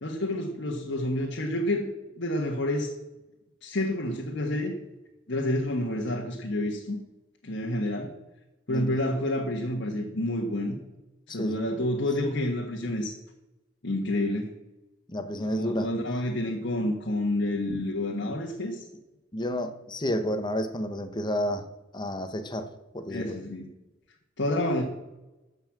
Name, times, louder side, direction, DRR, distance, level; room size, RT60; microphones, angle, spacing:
voice 1, 0.0-1.9 2.2-2.9 3.6-4.7 5.3-7.0 7.4-8.1 8.7-10.8 11.3-13.1 13.8-14.5 15.4-18.8 23.1-23.7 24.4-24.8, left 1 dB, 65° left, -1 dB, 1.5 m, -29 dB
voice 2, 11.3-11.7 15.1-15.9 19.3-21.7 21.9-22.7 22.9-23.3, equal, 25° left, 8 dB, 1.1 m, -30 dB
13.5 x 5.6 x 7.6 m, 1.0 s
head